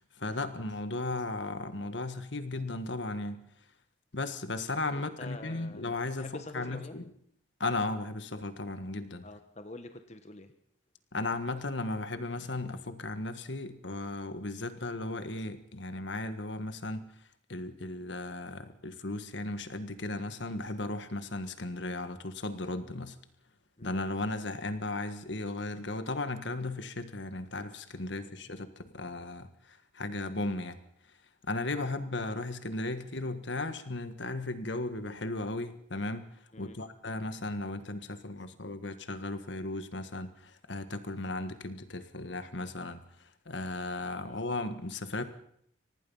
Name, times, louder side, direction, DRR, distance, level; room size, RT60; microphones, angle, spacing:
voice 1, 0.0-3.5 4.1-7.1 7.6-9.2 11.1-17.0 17.5-23.2 23.8-30.8 31.4-36.3 36.6-45.2, left 2 dB, 70° left, 10 dB, 1.6 m, -36 dB
voice 2, 4.9-5.8 6.2-7.0 9.2-10.5 23.8-24.0 28.1-28.3 36.5-36.8 44.2-44.5, left 2 dB, 35° left, 7 dB, 1.3 m, -47 dB
25.0 x 19.0 x 5.6 m, 0.70 s
head